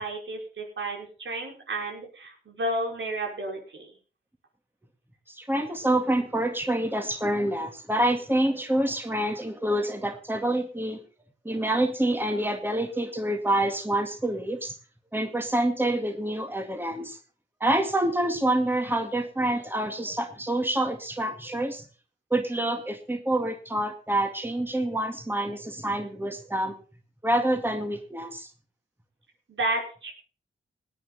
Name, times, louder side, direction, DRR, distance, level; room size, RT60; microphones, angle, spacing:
voice 1, 0.0-3.9 29.5-30.1, right 1 dB, 70° right, 1 dB, 5.4 m, -32 dB
voice 2, 5.3-11.0 11.4-14.8 15.1-17.2 17.6-21.8 22.3-26.7 27.2-28.5, right 1 dB, 10° right, 5 dB, 2.1 m, -27 dB
18.5 x 9.9 x 4.2 m, 0.37 s
cardioid pair, 70°, 20 cm